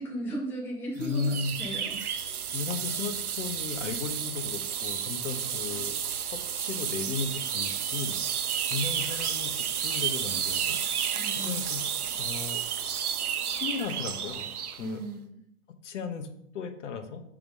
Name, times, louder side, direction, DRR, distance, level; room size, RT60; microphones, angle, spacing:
voice 1, 0.0-2.0 11.1-11.7 14.8-15.4, equal, 5° left, -2 dB, 0.6 m, -36 dB
voice 2, 1.0-1.6 2.5-5.9 6.3-10.8 11.3-11.8 12.1-12.6 13.5-14.5 14.8-15.0 15.8-16.3 16.5-17.2, left 5 dB, 55° left, 7 dB, 1.1 m, -35 dB
sound 1, 1.0-14.9, right 8 dB, 90° right, 0.7 m, -31 dB
7.0 x 3.7 x 4.7 m, 0.74 s
hypercardioid pair, 135°, 43 cm